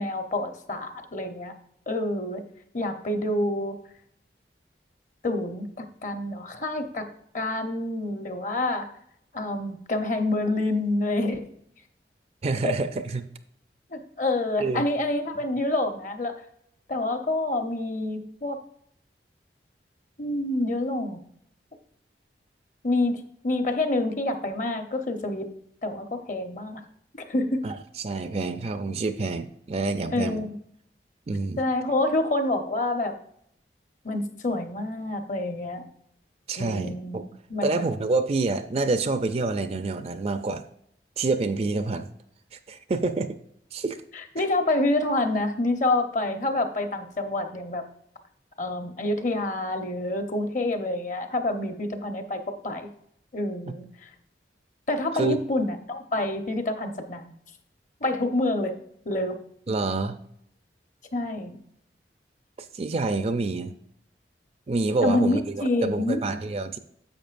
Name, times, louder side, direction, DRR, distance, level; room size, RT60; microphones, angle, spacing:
voice 1, 0.0-1.5 1.9-2.4 2.7-3.8 5.2-7.1 7.3-8.9 9.3-11.5 12.6-12.8 13.9-16.4 16.9-18.6 20.2-21.2 22.8-25.5 25.8-26.8 27.1-27.6 30.1-30.6 31.6-33.2 34.0-35.8 36.5-37.9 44.1-47.9 48.6-52.9 53.3-54.1 54.9-57.3 58.0-58.8 59.0-59.4 61.1-61.6 65.0-66.2, left 2 dB, 45° left, 0.9 m, -27 dB
voice 2, 12.4-13.2 14.6-14.9 27.6-27.7 28.0-30.4 31.3-31.6 36.5-37.3 37.6-40.6 41.2-42.1 42.7-43.4 43.7-44.0 55.2-55.4 59.7-60.2 62.7-63.7 64.7-66.8, right 3 dB, 35° right, 0.4 m, -27 dB
10.5 x 7.2 x 2.5 m
head